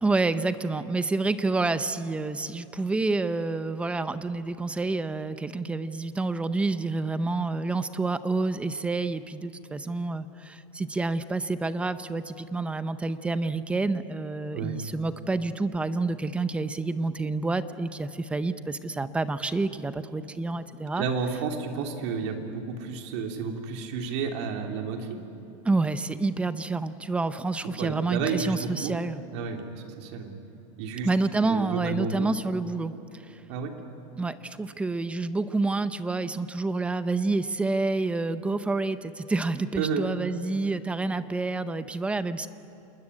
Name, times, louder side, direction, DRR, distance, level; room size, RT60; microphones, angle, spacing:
voice 1, 0.0-21.1 25.6-29.2 31.0-33.4 34.2-42.5, right 3 dB, 5° right, 12 dB, 0.6 m, -28 dB
voice 2, 21.0-25.2 27.8-28.9 29.3-30.3 30.8-31.1 31.4-32.3 33.5-33.7 39.8-40.0, right 5 dB, 60° right, 3 dB, 3.2 m, -31 dB
27.5 x 20.5 x 9.8 m, 2.9 s
supercardioid pair, 165°, 17 cm